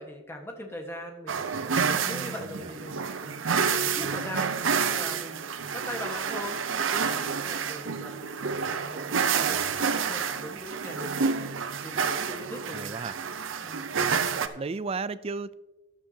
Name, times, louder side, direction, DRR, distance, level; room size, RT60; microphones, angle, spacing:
voice 1, 0.0-4.5 4.8-6.6 6.9-8.3 8.7-11.5 11.8-13.0 13.6-13.9, left 1 dB, 10° left, 2 dB, 1.4 m, -41 dB
sound 1, 1.3-14.5, right 6 dB, 75° right, 0.7 m, -29 dB
voice 2, 2.4-2.7 12.7-13.1 14.5-15.5, right 4 dB, 30° right, 15 dB, 0.3 m, -34 dB
14.5 x 10.5 x 2.8 m, 1.1 s
head